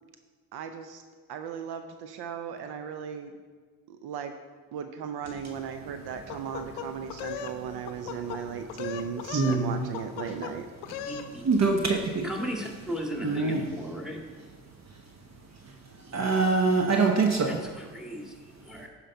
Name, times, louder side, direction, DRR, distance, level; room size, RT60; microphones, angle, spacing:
voice 1, 0.5-1.0 1.3-3.4 3.9-4.3 4.7-10.7, right 7 dB, 70° right, 0.7 m, -37 dB
sound 1, 6.3-7.6 7.9-8.4 8.7-9.6 9.9-10.5 10.8-11.3, left 9 dB, 90° left, 0.6 m, -37 dB
voice 2, 9.3-9.7 11.4-12.3 13.2-13.7 16.1-17.6, right 4 dB, 40° right, 0.9 m, -24 dB
voice 3, 11.1-12.0 12.2-14.2 17.5-18.9, equal, ahead, 1.9 m, -37 dB
10.0 x 4.3 x 5.4 m
supercardioid pair, 60°, 40 cm